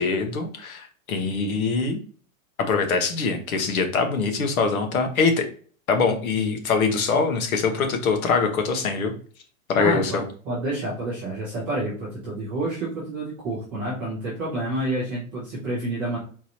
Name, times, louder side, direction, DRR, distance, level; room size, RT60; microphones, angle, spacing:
voice 1, 0.0-2.0 2.7-5.4 5.9-9.1 9.7-10.2, left 4 dB, 85° left, 6 dB, 1.3 m, -23 dB
voice 2, 9.8-16.2, right 1 dB, 5° right, -10 dB, 0.4 m, -29 dB
4.7 x 3.9 x 2.8 m, 0.43 s
supercardioid pair, 170°, 41 cm